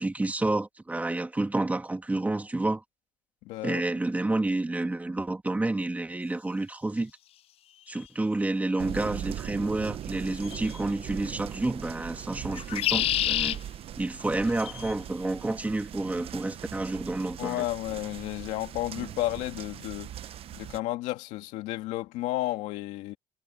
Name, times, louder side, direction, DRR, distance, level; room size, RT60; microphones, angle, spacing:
voice 1, 0.0-2.8 3.6-7.1 7.9-13.6 14.0-17.6, right 2 dB, 15° right, 2.6 m, -29 dB
voice 2, 3.4-3.8 17.4-20.1 20.5-23.2, left 16 dB, 85° left, 2.3 m, -32 dB
sound 1, 7.9-8.0 10.4-10.8 12.5-13.6 14.5-14.9, left 13 dB, 55° left, 0.4 m, -28 dB
sound 2, 8.8-20.8, right 11 dB, 55° right, 0.9 m, -40 dB
cardioid pair, 105°, 12 cm